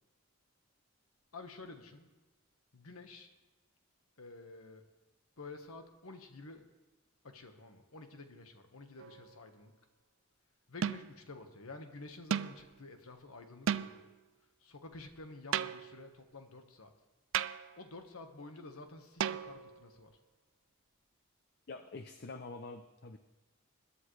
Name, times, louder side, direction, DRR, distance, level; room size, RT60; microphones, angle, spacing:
voice 1, 1.3-2.1 2.7-3.3 4.2-4.8 5.4-6.6 7.2-9.7 10.7-14.1 14.6-16.9 17.8-20.1, left 3 dB, 85° left, 6 dB, 1.3 m, -50 dB
sound 1, 9.0-9.4 10.8-11.2 12.3-12.7 13.7-14.1 15.5-16.1 17.3-17.8 19.2-19.8, right 8 dB, 60° right, 0.4 m, -35 dB
voice 2, 21.7-23.2, left 3 dB, 50° left, 8 dB, 0.6 m, -46 dB
21.0 x 11.0 x 3.2 m, 1.1 s
head